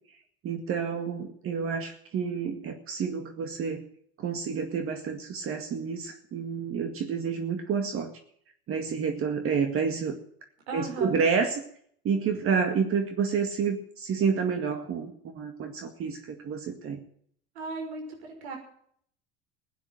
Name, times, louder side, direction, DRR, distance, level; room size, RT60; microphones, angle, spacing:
voice 1, 0.4-3.8 4.2-8.2 8.7-10.2 10.7-11.6 12.0-17.0, right 6 dB, 45° right, 5 dB, 2.1 m, -29 dB
voice 2, 10.7-11.2 17.5-18.6, right 3 dB, 90° right, 3 dB, 6.1 m, -36 dB
16.0 x 9.5 x 9.1 m, 0.64 s
supercardioid pair, 105°, 31 cm